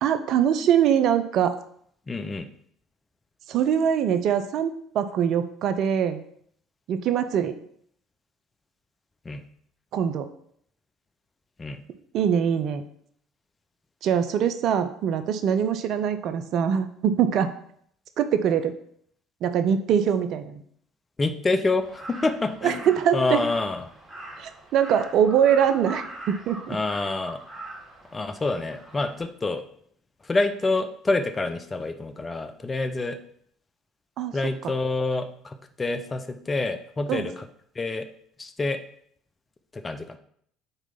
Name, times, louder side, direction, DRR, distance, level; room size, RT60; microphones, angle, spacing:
voice 1, 0.0-1.5 3.5-6.2 6.9-7.6 9.9-10.3 12.1-12.8 14.0-17.5 18.2-18.7 19.4-20.6 22.6-23.4 24.4-26.8 34.2-34.4 37.1-37.3, right 8 dB, 55° right, 9 dB, 0.5 m, -23 dB
voice 2, 2.1-2.4 9.2-9.4 11.6-11.8 21.2-23.8 26.7-27.4 28.1-29.7 30.2-33.2 34.3-37.4 37.7-38.0 38.4-38.8 39.7-40.2, left 3 dB, 25° left, 9 dB, 0.6 m, -27 dB
Crow, 21.8-29.2, right 2 dB, 15° right, 2.3 m, -42 dB
4.5 x 4.0 x 5.6 m, 0.65 s
figure-of-eight pair, 60°, 0 cm